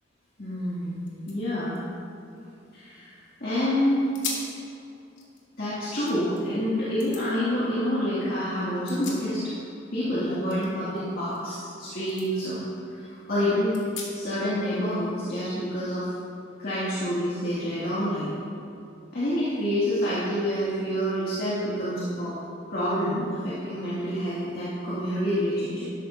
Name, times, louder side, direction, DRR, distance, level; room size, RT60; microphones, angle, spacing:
voice 1, 0.4-1.8 2.7-4.1 5.6-9.5 9.9-13.7 14.1-16.1 16.6-18.3 19.1-22.3 22.7-25.8, equal, 55° left, -11 dB, 2.3 m, -28 dB
sound 1, 0.7-0.8 1.0-3.2 3.6-3.7 4.1-4.6 5.0-6.4 7.0-7.2 8.6-9.7 10.0-11.8 12.1-12.3 12.8-12.9 13.7-14.4, left 4 dB, 70° left, 2.0 m, -40 dB
12.5 x 11.5 x 2.7 m, 2.6 s
head